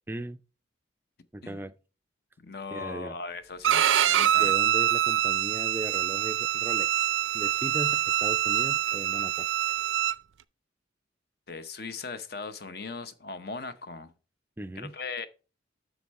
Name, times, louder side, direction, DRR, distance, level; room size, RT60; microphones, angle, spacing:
voice 1, 0.1-0.4 1.3-1.7 2.7-3.1 4.4-9.5 14.6-14.9, right 1 dB, 10° right, 0.4 m, -37 dB
voice 2, 2.4-4.5 11.5-14.1 14.8-15.3, left 4 dB, 50° left, 0.7 m, -39 dB
Bowed string instrument, 3.6-10.1, right 11 dB, 80° right, 0.4 m, -25 dB
8.0 x 6.3 x 4.2 m
head